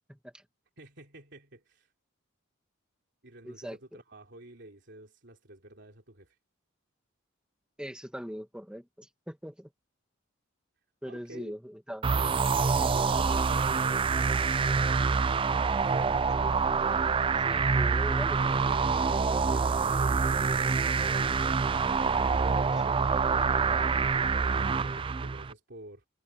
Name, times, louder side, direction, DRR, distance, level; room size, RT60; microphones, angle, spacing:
voice 1, 0.1-0.4 3.4-3.8 7.8-9.7 11.0-12.1 17.4-18.8 22.1-22.3 22.8-22.9, equal, 5° right, 2.1 m, -41 dB
voice 2, 0.8-1.9 3.2-6.4 11.1-11.5 12.6-14.7 15.9-16.4 19.5-20.7 21.8-26.1, right 1 dB, 55° right, 3.4 m, -49 dB
sound 1, 12.0-25.5, right 5 dB, 25° right, 0.3 m, -26 dB
head